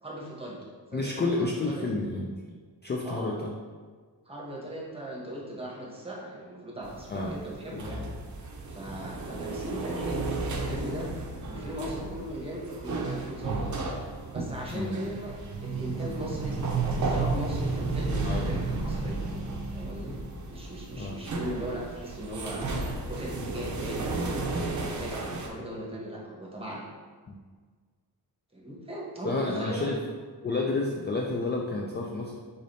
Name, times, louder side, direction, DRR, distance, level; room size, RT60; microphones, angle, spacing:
voice 1, 0.0-0.6 0.9-1.9 3.0-3.4 4.3-8.0 8.7-11.1 11.5-14.0 14.3-15.3 15.6-19.2 19.7-20.2 20.5-22.7 23.1-26.8 28.5-29.9 30.9-31.0, right 1 dB, 15° right, -4 dB, 1.0 m, -38 dB
voice 2, 0.9-2.3 2.8-3.6 7.1-7.3 7.7-8.1 14.7-15.0 18.2-18.6 21.0-21.2 27.3-27.4 29.2-30.1 30.4-32.4, left 3 dB, 30° left, 0 dB, 0.3 m, -30 dB
sound 1, 6.8-25.5, right 3 dB, 45° right, 0.6 m, -33 dB
4.8 x 4.0 x 2.7 m, 1.5 s
wide cardioid pair, 130°, 41 cm